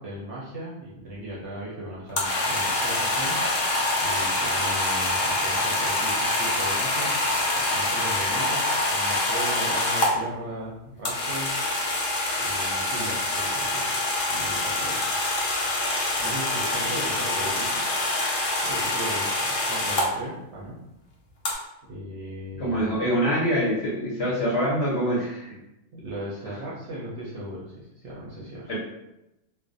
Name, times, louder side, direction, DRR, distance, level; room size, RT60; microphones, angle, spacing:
voice 1, 0.0-3.4 4.0-7.1 7.6-11.6 12.4-13.9 14.3-15.0 16.2-17.8 18.6-20.8 21.9-23.0 25.9-28.7, right 1 dB, 65° right, -6 dB, 0.7 m, -37 dB
sound 1, 2.1-10.1 11.0-20.1 21.4-21.5, left 2 dB, 90° left, 0.4 m, -25 dB
voice 2, 22.6-25.6 28.7-28.8, equal, 55° left, -7 dB, 0.7 m, -25 dB
2.4 x 2.0 x 2.5 m, 0.90 s
omnidirectional pair, 1.6 m